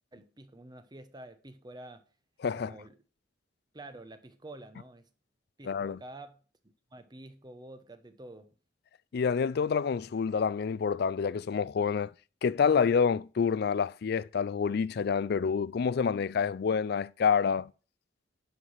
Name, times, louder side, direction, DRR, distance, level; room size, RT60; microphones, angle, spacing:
voice 1, 0.1-2.0 2.5-3.0 3.7-5.1 5.6-6.4 6.9-8.5, right 2 dB, 25° right, 0.8 m, -48 dB
voice 2, 5.7-6.0 9.1-12.1 12.4-17.7, left 6 dB, 60° left, 0.4 m, -28 dB
11.0 x 4.8 x 5.6 m
head